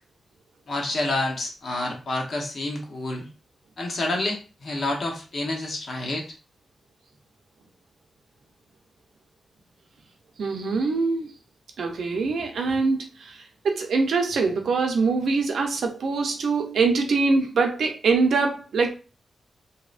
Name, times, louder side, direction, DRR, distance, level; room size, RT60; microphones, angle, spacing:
voice 1, 0.7-3.3 3.8-6.3, left 2 dB, 55° left, 1 dB, 0.8 m, -28 dB
voice 2, 10.4-11.3 11.8-13.3 13.6-18.9, right 4 dB, 80° right, 4 dB, 0.5 m, -23 dB
2.7 x 2.0 x 2.4 m, 0.34 s
wide cardioid pair, 130°, 0 cm